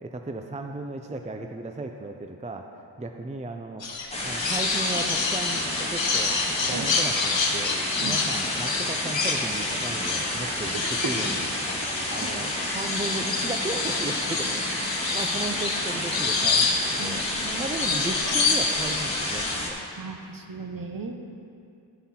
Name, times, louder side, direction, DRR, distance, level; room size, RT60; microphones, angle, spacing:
voice 1, 0.0-3.8 4.2-7.8 8.0-11.5 12.1-14.7 15.1-17.3 17.6-19.8, right 2 dB, 15° right, 4 dB, 0.5 m, -35 dB
sound 1, 3.8-19.6, left 4 dB, 65° left, 1.2 m, -28 dB
sound 2, 4.1-19.7, left 1 dB, 15° left, 1.8 m, -30 dB
voice 2, 10.4-11.1 11.8-12.1 12.7-12.8 17.0-17.7 20.0-21.1, right 4 dB, 45° right, 5 dB, 1.0 m, -36 dB
13.0 x 5.6 x 4.3 m, 2.5 s
cardioid pair, 50°, 47 cm